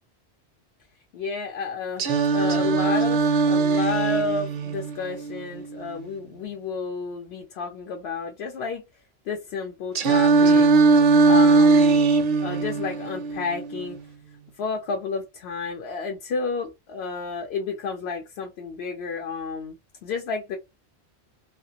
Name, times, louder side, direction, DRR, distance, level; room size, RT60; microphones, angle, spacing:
voice 1, 1.1-8.8 9.3-10.7 11.2-12.0 12.4-14.0 14.6-19.8 20.0-20.6, left 4 dB, 80° left, 0.8 m, -31 dB
Singing, 2.0-6.0 10.0-14.0, right 4 dB, 60° right, 0.6 m, -20 dB
2.4 x 2.4 x 2.7 m
omnidirectional pair, 1.1 m